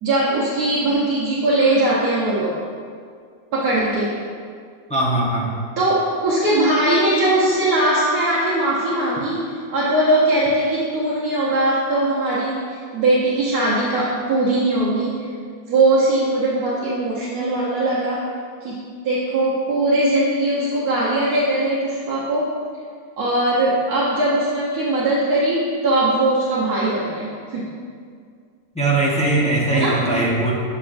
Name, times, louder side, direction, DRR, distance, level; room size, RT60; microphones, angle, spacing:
voice 1, 0.0-2.6 3.5-4.2 5.8-15.3 15.7-18.3 18.6-18.8 19.0-22.5 23.2-27.7 29.7-30.0, right 1 dB, 90° right, -8 dB, 1.5 m, -20 dB
voice 2, 4.9-5.5 28.7-30.5, right 2 dB, 5° left, -5 dB, 0.7 m, -20 dB
7.5 x 6.8 x 2.6 m, 2.1 s
omnidirectional pair, 1.6 m